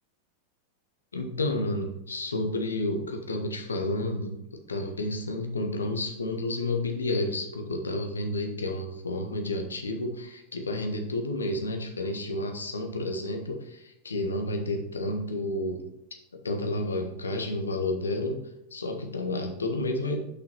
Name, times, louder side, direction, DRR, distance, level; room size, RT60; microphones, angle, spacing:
voice 1, 1.1-4.4 4.7-15.8 16.4-18.4 18.7-20.2, left 2 dB, 75° left, 4 dB, 1.1 m, -30 dB
6.5 x 5.5 x 4.3 m, 0.80 s
figure-of-eight pair, 90°, 0 cm